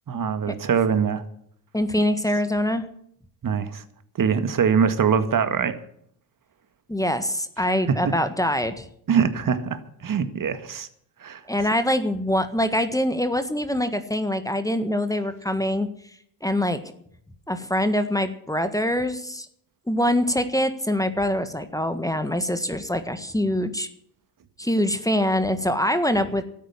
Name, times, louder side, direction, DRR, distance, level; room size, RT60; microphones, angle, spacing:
voice 1, 0.1-1.2 3.4-3.8 4.2-5.8 7.6-8.1 9.1-10.9 11.2-11.4, right 6 dB, 40° right, 11 dB, 1.8 m, -23 dB
voice 2, 1.7-2.8 6.9-8.9 11.5-15.9 16.4-16.8 17.5-19.5 19.9-23.9 24.6-26.4, left 1 dB, 5° left, 10 dB, 1.6 m, -24 dB
12.5 x 9.4 x 9.6 m, 0.66 s
hypercardioid pair, 60°, 48 cm